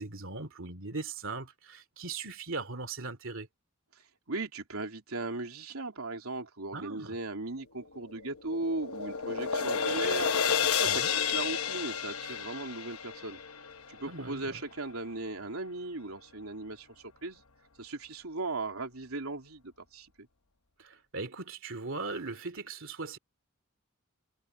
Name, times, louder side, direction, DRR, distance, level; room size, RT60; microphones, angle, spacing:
voice 1, 0.0-3.5 6.7-7.2 10.8-11.1 14.1-14.6 20.8-23.2, right 3 dB, 65° right, 2.8 m, -39 dB
voice 2, 4.3-10.3 10.7-13.4 13.9-16.9 17.2-17.4 17.8-20.3, right 2 dB, 85° right, 3.2 m, -37 dB
sound 1, 8.0-14.3, left 7 dB, 85° left, 1.1 m, -31 dB
head